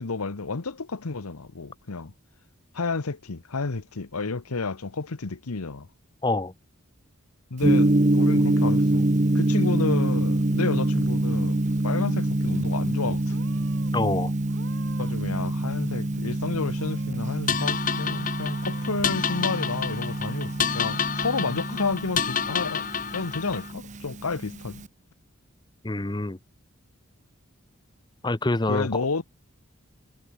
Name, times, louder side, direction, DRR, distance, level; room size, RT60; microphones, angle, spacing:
voice 1, 0.0-2.1 2.7-5.9 7.5-13.4 15.0-22.8 23.1-24.8 28.7-29.2, left 4 dB, 90° left, 1.0 m, -31 dB
voice 2, 6.2-6.5 13.9-14.3 25.8-26.4 28.2-29.0, left 2 dB, 20° left, 0.7 m, -26 dB
Gong, 7.6-24.9, right 1 dB, 35° right, 0.9 m, -26 dB
Purr / Meow, 10.8-11.4 11.6-12.2 12.9-13.0 13.3-13.9 14.4-15.3 15.6-16.3 16.7-17.3 17.7-17.8 18.3-19.1, right 3 dB, 60° right, 3.9 m, -51 dB
sound 1, 17.5-23.7, left 7 dB, 35° left, 1.3 m, -29 dB
head